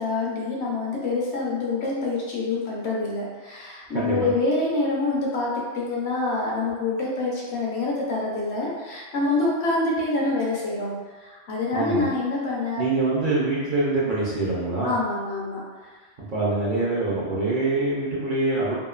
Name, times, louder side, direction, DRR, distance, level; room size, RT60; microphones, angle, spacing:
voice 1, 0.0-12.8 13.1-13.2 14.8-15.6, left 3 dB, 65° left, -4 dB, 0.9 m, -26 dB
voice 2, 3.9-4.3 11.7-12.1 12.7-14.9 16.3-18.8, right 2 dB, 55° right, -7 dB, 0.6 m, -24 dB
2.9 x 2.4 x 2.3 m, 1.4 s
omnidirectional pair, 1.2 m